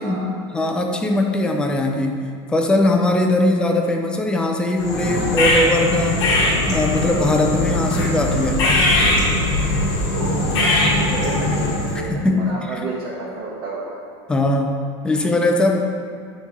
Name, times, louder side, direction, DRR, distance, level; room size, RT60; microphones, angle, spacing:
voice 1, 0.0-6.2 6.7-8.7 12.1-12.7 14.3-15.8, left 1 dB, 5° left, 2 dB, 0.4 m, -20 dB
sound 1, 4.8-12.0, left 2 dB, 65° left, 1.3 m, -20 dB
voice 2, 10.1-14.0, right 3 dB, 60° right, -8 dB, 1.2 m, -31 dB
9.9 x 3.3 x 3.2 m, 2.3 s
supercardioid pair, 160°, 15 cm